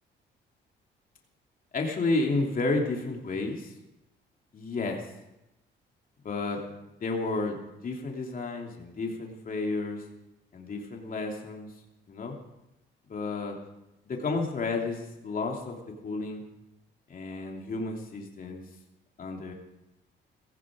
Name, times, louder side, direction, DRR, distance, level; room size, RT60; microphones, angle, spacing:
voice 1, 1.7-3.7 4.5-5.0 6.2-6.6 7.0-7.6 7.8-10.0 10.5-11.7 12.1-12.4 13.1-13.5 14.1-15.8 16.0-16.4 17.1-18.6 19.2-19.5, left 3 dB, 45° left, 0 dB, 2.9 m, -31 dB
16.5 x 15.5 x 4.9 m, 0.93 s
cardioid pair, 90°, 20 cm